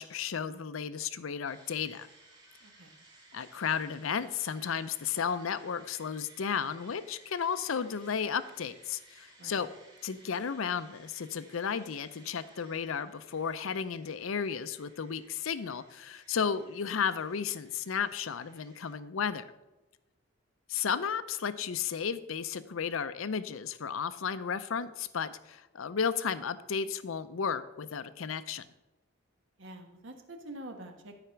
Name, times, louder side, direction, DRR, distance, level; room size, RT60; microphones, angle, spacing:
voice 1, 0.0-2.1 3.3-9.7 10.0-19.5 20.7-28.6, left 6 dB, 75° left, 13 dB, 0.5 m, -33 dB
sound 1, 1.4-18.9, right 2 dB, 20° right, 1.9 m, -59 dB
voice 2, 29.6-31.2, right 1 dB, 65° right, 5 dB, 1.4 m, -46 dB
12.5 x 4.9 x 5.8 m, 1.0 s
head